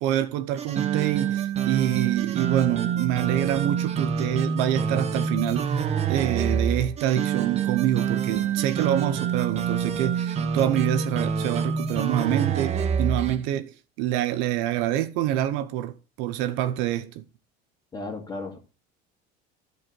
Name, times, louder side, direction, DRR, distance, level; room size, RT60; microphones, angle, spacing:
voice 1, 0.0-17.2, right 12 dB, 70° right, 0.9 m, -26 dB
sound 1, 0.6-13.4, right 7 dB, 30° right, 1.0 m, -27 dB
voice 2, 17.9-18.6, left 3 dB, 20° left, 2.4 m, -34 dB
11.5 x 4.9 x 4.6 m
cardioid pair, 135°, 21 cm